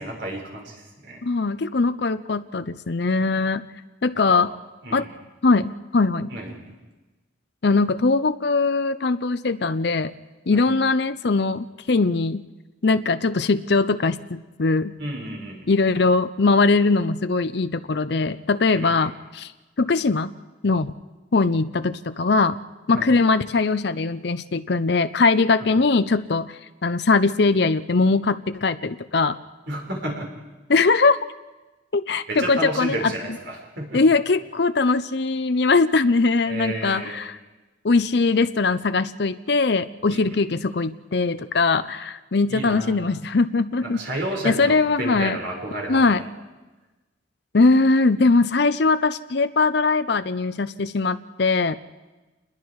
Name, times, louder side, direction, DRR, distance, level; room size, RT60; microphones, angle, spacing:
voice 1, 0.0-1.2 4.3-4.4 4.8-5.1 6.3-6.5 10.5-10.7 15.0-15.6 18.7-19.1 22.9-23.1 25.6-25.7 29.7-30.3 32.3-34.0 36.5-37.2 40.1-40.4 42.5-43.2 43.8-46.3, right 1 dB, 65° right, -1 dB, 5.5 m, -31 dB
voice 2, 1.2-3.6 4.0-4.5 4.9-5.1 5.4-6.3 7.6-10.1 10.5-12.4 12.8-15.0 15.7-19.5 19.8-20.3 20.6-20.9 21.3-22.6 22.9-29.4 30.7-31.2 31.9-33.1 33.9-37.3 37.8-44.0 44.4-45.4 45.9-46.2 47.5-51.8, left 3 dB, 55° left, 11 dB, 0.6 m, -21 dB
28.0 x 21.0 x 4.8 m, 1.2 s
head